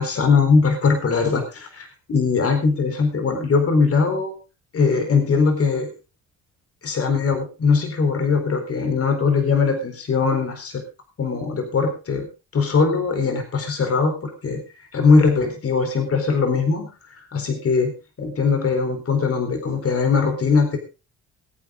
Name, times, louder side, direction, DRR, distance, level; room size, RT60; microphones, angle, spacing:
voice 1, 0.0-4.3 4.7-5.9 6.8-10.8 11.2-12.3 12.5-14.6 14.9-17.9 18.2-20.8, left 4 dB, 50° left, 6 dB, 4.2 m, -20 dB
21.5 x 8.9 x 3.8 m, 0.30 s
cardioid pair, 90°, 30 cm